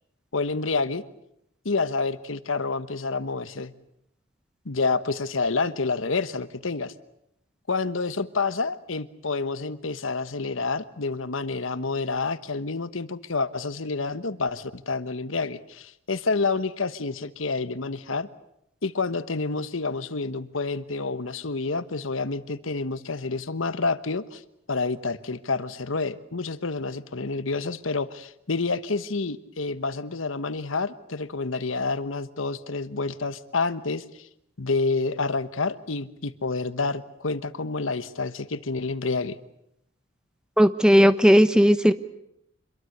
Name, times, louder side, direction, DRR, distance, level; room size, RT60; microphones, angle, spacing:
voice 1, 0.3-1.0 1.6-3.7 4.6-6.9 7.7-18.3 18.8-24.4 24.7-34.3 34.6-39.4, left 3 dB, 85° left, 13 dB, 1.2 m, -28 dB
voice 2, 40.6-41.9, equal, 5° right, 12 dB, 0.9 m, -16 dB
26.5 x 22.5 x 8.0 m, 0.78 s
head